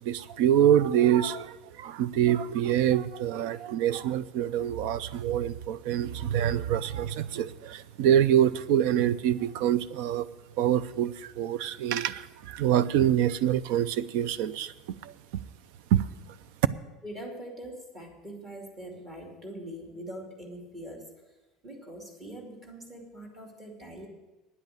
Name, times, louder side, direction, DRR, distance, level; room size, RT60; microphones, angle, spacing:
voice 1, 0.0-10.3 10.6-14.7 15.0-15.1 15.9-16.0, right 10 dB, 70° right, 17 dB, 0.5 m, -25 dB
voice 2, 17.0-21.1 21.6-24.1, right 1 dB, 25° right, 1 dB, 2.6 m, -43 dB
9.9 x 8.1 x 8.7 m, 1.1 s
cardioid pair, 155°, 0 cm